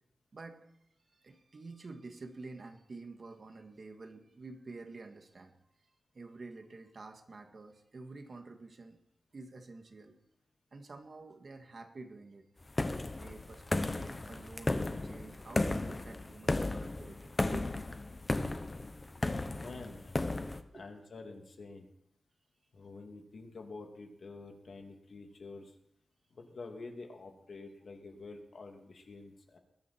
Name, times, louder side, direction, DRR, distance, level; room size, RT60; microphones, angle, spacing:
voice 1, 0.3-0.7 1.1-5.9 6.1-9.0 9.3-10.2 10.7-12.5 13.1-17.7 19.6-20.0 20.7-20.9, right 3 dB, 45° right, 5 dB, 1.7 m, -49 dB
sound 1, 12.8-20.6, left 2 dB, 25° left, 1.0 m, -34 dB
voice 2, 19.4-20.4 20.7-21.9 22.7-25.7 26.3-29.6, left 3 dB, 65° left, 2 dB, 2.7 m, -48 dB
21.0 x 12.5 x 4.5 m, 0.77 s
wide cardioid pair, 160°, 0 cm